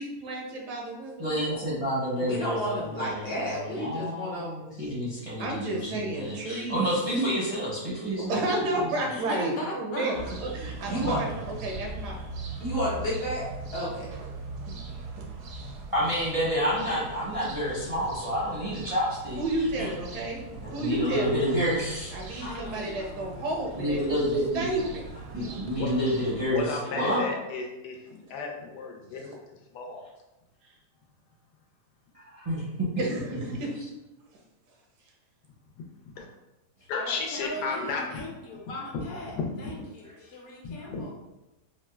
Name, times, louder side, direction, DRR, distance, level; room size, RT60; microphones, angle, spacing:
voice 1, 0.0-1.6 5.4-6.9 8.3-12.2 15.2-15.3 15.5-15.7 19.4-20.4 20.7-21.4 22.1-24.2 24.5-25.0 33.0-33.7, right 2 dB, 85° right, 0 dB, 1.3 m, -31 dB
voice 2, 1.2-8.4 8.7-8.9 15.9-19.9 20.6-22.5 23.8-24.7 25.3-27.3 32.1-32.9, equal, 35° right, -8 dB, 0.5 m, -29 dB
voice 3, 2.2-4.6 7.1-7.2 10.9-11.2 12.6-13.4 13.7-14.1, equal, 50° left, -5 dB, 0.8 m, -31 dB
voice 4, 9.1-10.3 22.4-23.3 36.9-41.1, left 1 dB, 70° left, -2 dB, 1.1 m, -39 dB
sound 1, 10.1-26.7, right 3 dB, 70° right, 0.8 m, -40 dB
voice 5, 26.5-29.4 29.7-30.0 36.2-36.3 36.9-38.0 38.9-39.0 39.3-39.5 40.6-41.0, left 4 dB, 90° left, 1 dB, 1.2 m, -33 dB
4.3 x 2.1 x 2.2 m, 0.98 s
omnidirectional pair, 1.7 m